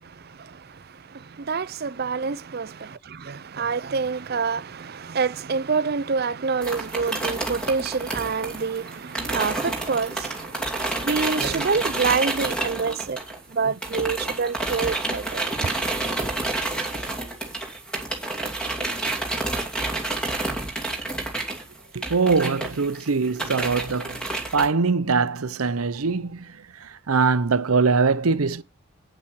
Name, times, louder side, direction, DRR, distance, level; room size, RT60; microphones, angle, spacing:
voice 1, 0.0-13.2 13.5-15.7, right 5 dB, 45° right, 0.5 m, -27 dB
sound 1, 6.6-13.5 13.8-24.7, right 2 dB, 5° left, 2.7 m, -29 dB
voice 2, 21.9-24.2 24.5-28.6, right 4 dB, 90° right, 0.8 m, -22 dB
9.0 x 8.5 x 4.7 m
head